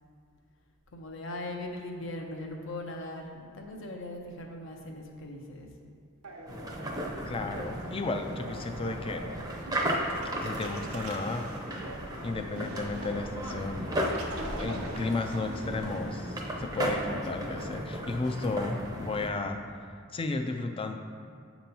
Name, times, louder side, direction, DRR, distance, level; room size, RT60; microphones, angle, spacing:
voice 1, 0.9-5.9 7.4-7.6, left 1 dB, 60° left, 2 dB, 0.7 m, -40 dB
sound 1, 6.2-17.0, right 2 dB, 90° right, 0.8 m, -43 dB
sound 2, 6.5-19.3, equal, 15° right, 0.6 m, -35 dB
voice 2, 7.3-9.3 10.4-11.5 12.2-14.1 14.5-19.6 20.1-21.0, left 3 dB, 25° left, 6 dB, 0.3 m, -33 dB
7.6 x 3.0 x 5.3 m, 2.2 s
head